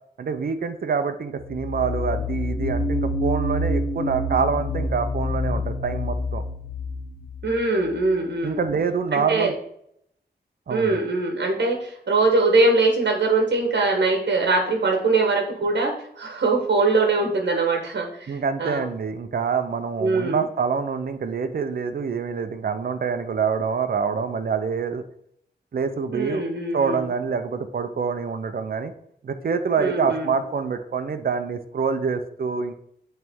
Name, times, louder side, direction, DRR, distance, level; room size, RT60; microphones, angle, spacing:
voice 1, 0.2-6.4 8.4-9.5 10.7-11.0 18.3-25.0 25.7-26.4 26.7-28.9 29.2-32.7, right 6 dB, 55° right, 9 dB, 0.5 m, -26 dB
sound 1, 1.4-8.0, left 1 dB, 55° left, 0.8 m, -27 dB
voice 2, 7.4-8.6 9.1-9.5 10.7-18.8 20.0-20.4 26.1-27.1 29.8-30.3, right 3 dB, 70° right, 2 dB, 1.1 m, -22 dB
8.7 x 3.2 x 3.6 m, 0.71 s
wide cardioid pair, 110°, 18 cm